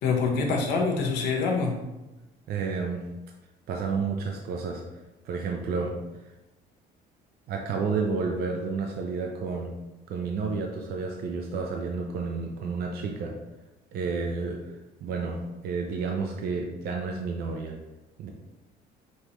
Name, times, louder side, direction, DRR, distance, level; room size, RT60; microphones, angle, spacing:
voice 1, 0.0-1.8, left 4 dB, 80° left, 1 dB, 1.0 m, -25 dB
voice 2, 2.5-3.0 3.7-4.8 5.2-5.9 7.5-9.7 10.1-13.3 13.9-14.6 15.0-15.4 15.6-17.7 18.2-18.3, right 4 dB, 65° right, 1 dB, 0.6 m, -30 dB
5.3 x 3.0 x 3.1 m, 1.0 s
cardioid pair, 110°, 17 cm